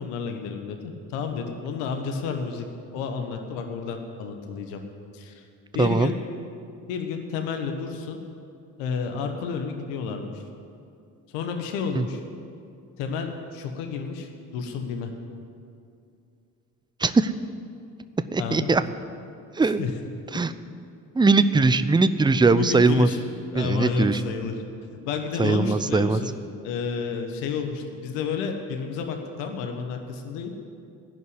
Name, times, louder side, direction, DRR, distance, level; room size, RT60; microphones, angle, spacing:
voice 1, 0.0-2.7 2.9-4.8 5.1-5.4 5.7-6.2 6.9-8.2 8.8-10.4 11.3-12.2 13.0-15.1 18.4-18.7 19.6-19.9 22.5-23.2 23.5-24.6 24.9-26.3 26.6-30.5, left 5 dB, 80° left, 5 dB, 1.2 m, -30 dB
voice 2, 5.8-6.1 12.0-12.1 17.0-17.3 18.3-18.8 19.6-19.8 20.3-20.5 21.2-23.1 23.6-24.2 25.4-26.2, right 3 dB, 10° right, 13 dB, 0.6 m, -20 dB
16.0 x 5.5 x 9.9 m, 2.5 s
hypercardioid pair, 50°, 43 cm